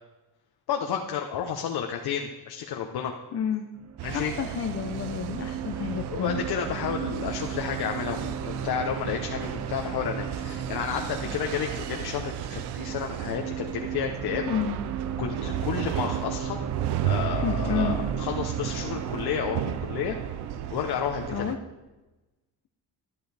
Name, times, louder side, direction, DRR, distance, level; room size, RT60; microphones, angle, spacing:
voice 1, 0.7-3.1 4.0-4.3 6.1-14.5 15.2-16.6 17.0-20.2 20.7-21.4, left 8 dB, 75° left, 2 dB, 0.9 m, -31 dB
voice 2, 3.3-3.7 4.1-6.4 11.2-11.4 14.5-14.8 17.3-18.0 21.3-21.6, left 8 dB, 40° left, 6 dB, 0.7 m, -30 dB
sound 1, 3.7-20.7, right 7 dB, 45° right, 0.6 m, -37 dB
sound 2, 4.0-21.6, right 11 dB, 90° right, 0.7 m, -34 dB
12.5 x 10.5 x 3.4 m, 1.1 s
cardioid pair, 125°, 39 cm